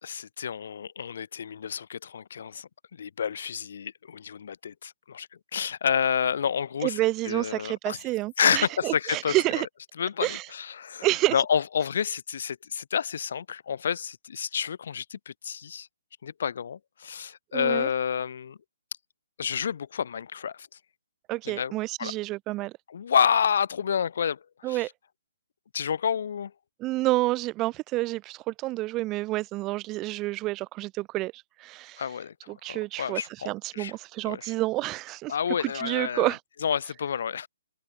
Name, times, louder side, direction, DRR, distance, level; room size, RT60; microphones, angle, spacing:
voice 1, 0.0-2.7 3.0-7.0 7.2-8.0 8.4-9.6 10.0-15.9 16.2-18.6 19.4-20.7 21.5-21.7 22.0-22.1 22.9-24.9 25.7-26.5 32.0-32.3 32.7-33.9 34.2-34.5 35.3-36.3 36.6-37.5, left 7 dB, 60° left, 2.7 m, -29 dB
voice 2, 6.8-9.7 10.2-10.5 11.0-11.3 17.5-17.9 21.3-22.7 24.6-24.9 26.8-32.0 32.5-35.3 35.6-36.4, right 19 dB, 20° right, 1.0 m, -29 dB
hypercardioid pair, 160°, 0 cm